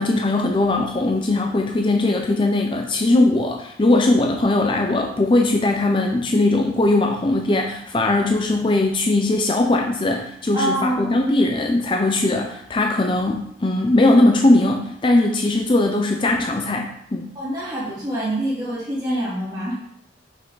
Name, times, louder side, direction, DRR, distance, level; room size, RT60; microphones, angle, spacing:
voice 1, 0.0-17.3, left 2 dB, 30° left, 2 dB, 0.5 m, -19 dB
voice 2, 10.5-11.2 17.3-19.7, right 1 dB, 20° right, -8 dB, 2.9 m, -25 dB
5.9 x 5.6 x 3.8 m, 0.74 s
head